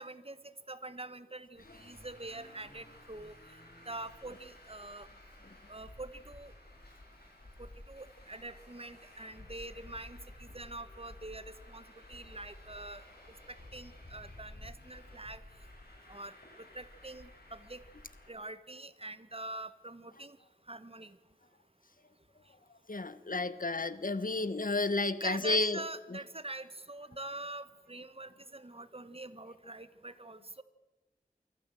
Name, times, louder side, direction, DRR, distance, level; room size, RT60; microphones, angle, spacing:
voice 1, 0.0-3.6 3.9-5.1 5.7-6.5 7.6-11.8 12.1-13.0 13.5-15.4 16.1-17.8 18.3-20.4 20.7-21.2 25.2-30.6, right 2 dB, 40° right, 13 dB, 1.3 m, -45 dB
Traffic noise roadway noise, 1.5-18.3, left 1 dB, 90° left, 8.0 m, -53 dB
voice 2, 22.9-25.8, left 3 dB, 60° left, 14 dB, 1.1 m, -31 dB
24.0 x 14.5 x 7.7 m, 1.1 s
wide cardioid pair, 50°, 16 cm